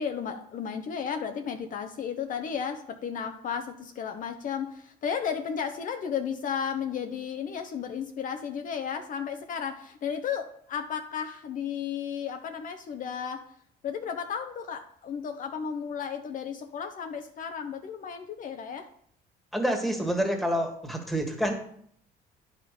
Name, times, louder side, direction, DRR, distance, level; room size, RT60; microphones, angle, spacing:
voice 1, 0.0-13.5 13.8-18.9, left 7 dB, 50° left, 6 dB, 0.8 m, -34 dB
voice 2, 19.5-21.6, equal, ahead, 3 dB, 1.7 m, -28 dB
10.0 x 5.0 x 5.1 m, 0.64 s
cardioid pair, 110°, 17 cm